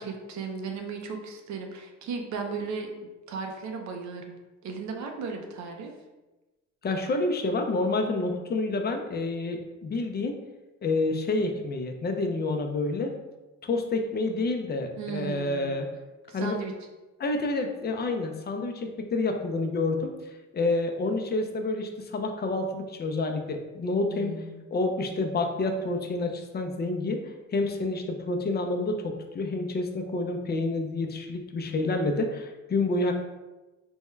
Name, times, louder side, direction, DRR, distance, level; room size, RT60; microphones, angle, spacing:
voice 1, 0.0-2.9 3.3-5.9 15.0-15.7 16.3-16.7 24.1-24.6, right 5 dB, 70° right, 4 dB, 0.6 m, -36 dB
voice 2, 6.8-10.4 10.8-13.1 13.6-15.9 16.3-16.6 17.2-20.1 20.5-24.3 24.7-33.1, left 2 dB, 35° left, 4 dB, 0.5 m, -28 dB
3.5 x 2.2 x 3.1 m, 1.1 s
cardioid pair, 90°, 30 cm